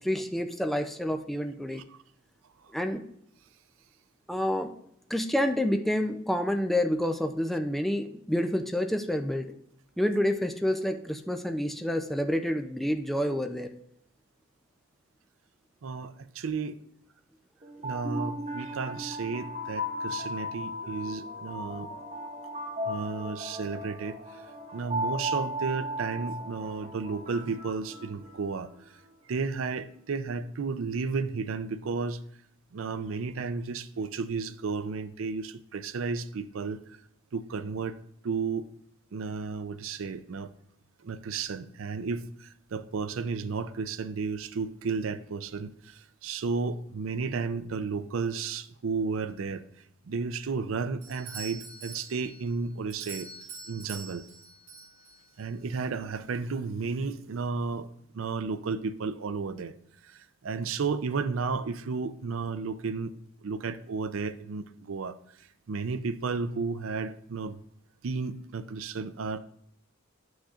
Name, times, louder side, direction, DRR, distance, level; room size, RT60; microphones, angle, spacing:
voice 1, 0.0-1.8 2.7-3.1 4.3-4.7 5.1-9.5 10.0-13.7, left 1 dB, ahead, 6 dB, 0.4 m, -28 dB
voice 2, 15.8-16.8 17.8-21.9 22.9-24.2 24.7-28.7 29.3-32.2 32.7-36.8 37.3-38.0 38.2-38.7 39.1-40.5 41.0-49.6 50.1-53.3 53.7-54.2 55.4-57.9 58.1-59.7 60.4-63.1 63.4-65.2 65.7-67.6 68.0-69.4, right 4 dB, 75° right, 12 dB, 0.5 m, -33 dB
sound 1, 17.6-28.7, equal, 35° right, 1.5 m, -36 dB
Doorbell, 51.0-55.5, right 4 dB, 55° right, 3.3 m, -45 dB
11.5 x 6.3 x 2.4 m, 0.71 s
head